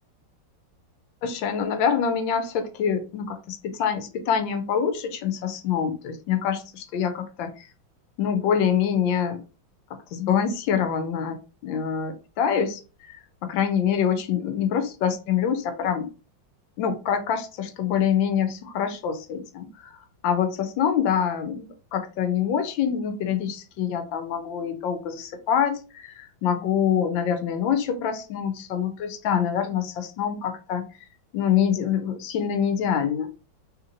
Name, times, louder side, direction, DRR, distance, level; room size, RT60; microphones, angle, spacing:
voice 1, 1.2-7.7 8.2-9.4 10.1-11.4 11.6-16.1 16.8-19.9 20.2-30.9 31.3-33.3, left 8 dB, 75° left, 8 dB, 1.3 m, -25 dB
3.2 x 3.0 x 2.5 m, 0.33 s
omnidirectional pair, 2.2 m